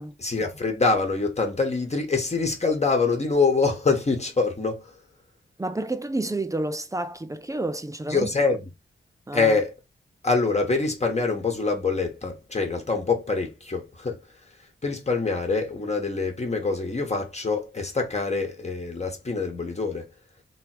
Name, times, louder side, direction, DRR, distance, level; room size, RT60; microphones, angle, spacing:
voice 1, 0.2-4.8 8.1-8.7 9.3-9.7 10.2-14.2 14.8-20.1, left 4 dB, 30° left, 1.3 m, -25 dB
voice 2, 5.6-8.5 9.3-9.6, right 2 dB, 15° right, 0.5 m, -30 dB
3.4 x 3.1 x 4.5 m
wide cardioid pair, 95°, 21 cm